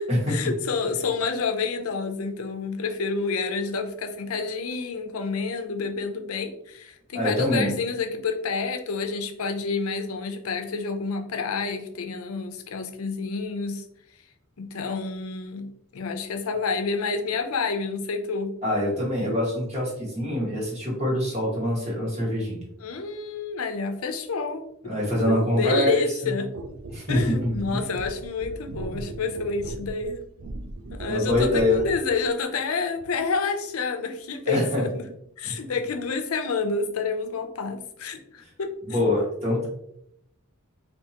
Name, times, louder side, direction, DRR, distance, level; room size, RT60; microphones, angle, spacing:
voice 1, 0.0-13.9 14.6-18.5 22.8-24.6 25.6-26.5 27.1-30.2 31.0-35.0 35.4-38.7, left 4 dB, 75° left, 5 dB, 0.5 m, -29 dB
voice 2, 7.1-7.7 18.6-22.6 24.8-26.3 26.9-27.8 31.0-31.8 34.5-34.8 35.4-35.7 38.9-39.7, left 1 dB, 30° right, -4 dB, 1.4 m, -25 dB
sound 1, 26.5-32.1 33.0-33.1, right 2 dB, 70° right, 0.4 m, -38 dB
3.4 x 2.7 x 2.8 m, 0.75 s
head